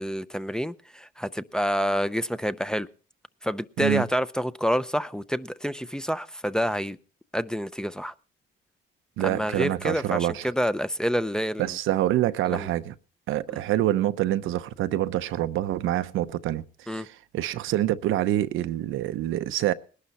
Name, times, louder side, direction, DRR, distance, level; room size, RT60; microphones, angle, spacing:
voice 1, 0.0-2.9 3.4-7.0 7.3-8.1 9.2-11.7 12.4-12.7 13.5-13.6 16.9-17.1, equal, 5° left, 0.6 m, -28 dB
voice 2, 9.2-10.5 11.6-12.9 13.3-19.7, right 13 dB, 85° right, 0.8 m, -26 dB
20.0 x 11.5 x 4.2 m
cardioid pair, 90°, 20 cm